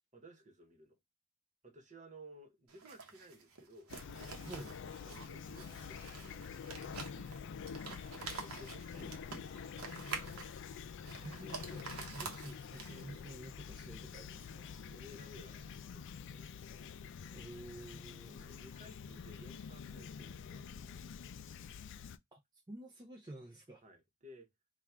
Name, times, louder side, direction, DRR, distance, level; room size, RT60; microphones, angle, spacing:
voice 1, 0.1-1.0 1.6-3.9 5.0-7.4 8.4-10.3 14.8-16.6 18.1-21.3 21.7-21.9 23.8-24.5, right 1 dB, 35° right, 1.1 m, -58 dB
sound 1, 2.7-13.2, right 4 dB, 90° right, 1.0 m, -48 dB
Fowl / Chirp tweet, 3.9-22.2, left 6 dB, 60° left, 0.4 m, -47 dB
voice 2, 4.4-4.7 11.2-14.7 17.3-18.5 22.3-23.8, right 1 dB, 20° right, 0.5 m, -50 dB
3.6 x 2.4 x 4.3 m
head